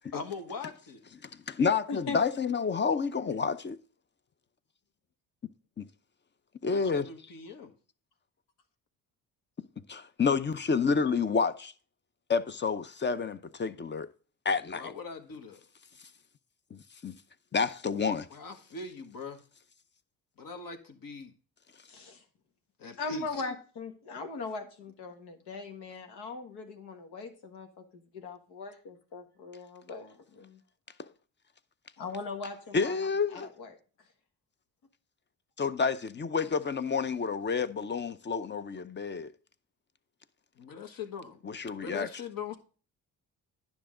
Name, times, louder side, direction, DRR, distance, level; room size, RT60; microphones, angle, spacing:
voice 1, 0.1-1.0 6.6-7.7 14.7-15.6 18.3-19.4 20.4-21.3 22.8-23.4 40.6-41.4 41.8-42.6, left 5 dB, 55° left, 1.5 m, -41 dB
voice 2, 1.2-3.8 5.8-5.9 6.6-7.1 9.9-11.7 12.3-14.1 14.4-14.9 16.7-17.1 17.5-18.3 31.0-31.1 32.7-33.5 35.6-39.3 41.4-42.1, left 5 dB, 30° left, 0.6 m, -29 dB
voice 3, 1.9-2.2 21.9-22.2 23.0-27.7 28.1-30.6 32.0-33.7, left 3 dB, 80° left, 1.5 m, -40 dB
10.0 x 6.0 x 3.8 m
supercardioid pair, 70°, 40 cm